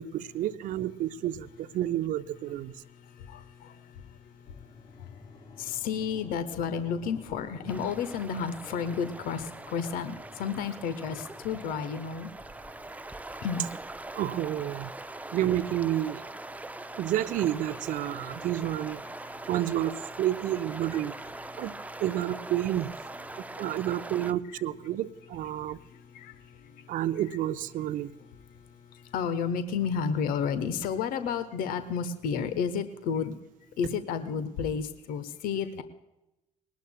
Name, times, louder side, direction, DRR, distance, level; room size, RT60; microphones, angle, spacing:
voice 1, 0.0-2.7 14.1-14.9 15.3-16.2 17.0-19.0 19.5-21.1 21.6-21.7 22.0-22.9 23.6-25.8 26.9-28.1, right 12 dB, 55° right, 14 dB, 0.7 m, -30 dB
voice 2, 2.7-5.2 5.6-12.3 13.4-13.7 18.2-18.5 18.9-19.4 20.9-21.6 23.3-23.8 24.5-24.6 25.5-27.0 28.1-33.4 33.8-35.8, left 6 dB, 60° left, 11 dB, 1.0 m, -33 dB
sound 1, 4.5-16.7, left 3 dB, 30° left, 4.8 m, -53 dB
sound 2, 7.7-24.3, right 2 dB, 10° right, 0.6 m, -42 dB
21.0 x 18.5 x 2.2 m, 0.95 s
figure-of-eight pair, 45°, 17 cm